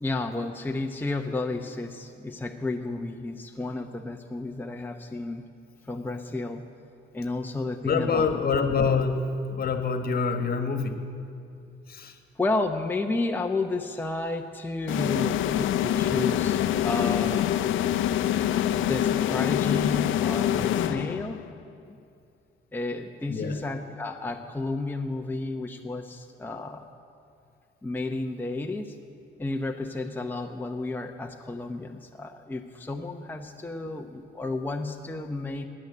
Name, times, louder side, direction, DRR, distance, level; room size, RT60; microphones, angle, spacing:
voice 1, 0.0-5.5 5.9-6.7 7.1-8.3 12.4-17.5 18.9-21.4 21.9-22.0 22.7-26.9 27.8-28.9 29.4-35.7, left 2 dB, 10° left, 3 dB, 0.8 m, -32 dB
voice 2, 7.8-9.2 9.5-11.0 11.9-12.2 23.3-23.6, left 5 dB, 50° left, 7 dB, 1.4 m, -26 dB
sound 1, 14.9-21.5, left 11 dB, 80° left, 0.6 m, -25 dB
13.5 x 9.9 x 9.3 m, 2.5 s
cardioid pair, 90°, 20 cm